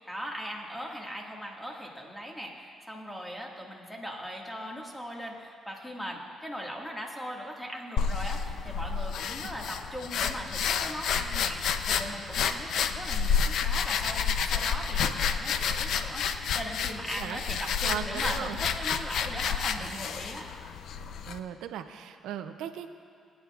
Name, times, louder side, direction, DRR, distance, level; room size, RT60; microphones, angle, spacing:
voice 1, 0.0-20.5, equal, 5° left, -1 dB, 1.8 m, -39 dB
sound 1, 8.0-21.4, left 6 dB, 75° left, 0.5 m, -30 dB
voice 2, 17.9-18.6 19.9-20.0 21.3-22.9, right 9 dB, 90° right, 8 dB, 0.5 m, -37 dB
21.0 x 9.4 x 2.4 m, 2.3 s
cardioid pair, 90°, 0 cm